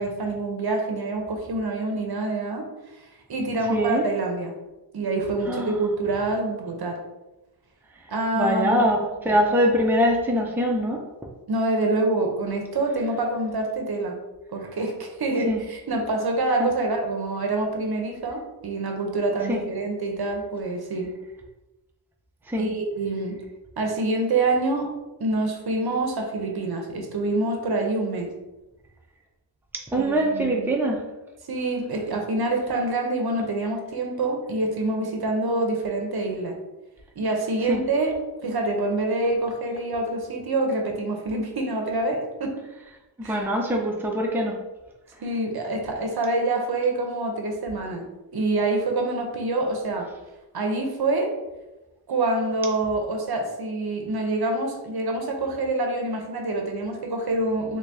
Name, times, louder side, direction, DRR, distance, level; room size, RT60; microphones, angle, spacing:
voice 1, 0.0-2.7 3.3-4.5 4.9-7.0 8.1-8.8 11.5-14.2 14.5-21.1 22.6-23.3 23.8-24.9 25.2-28.3 30.0-30.7 31.5-36.6 37.2-38.1 38.4-42.6 43.2-43.4 45.2-48.1 48.3-50.1 50.5-51.3 52.1-57.8, right 2 dB, 60° right, 2 dB, 0.7 m, -26 dB
voice 2, 3.7-4.0 5.4-5.7 8.3-11.0 15.5-15.6 16.6-16.7 19.5-19.6 22.5-22.7 29.9-31.0 37.7-37.8 43.2-44.6, equal, 5° right, -1 dB, 0.6 m, -23 dB
3.2 x 2.6 x 3.4 m, 1.0 s
wide cardioid pair, 65°, 44 cm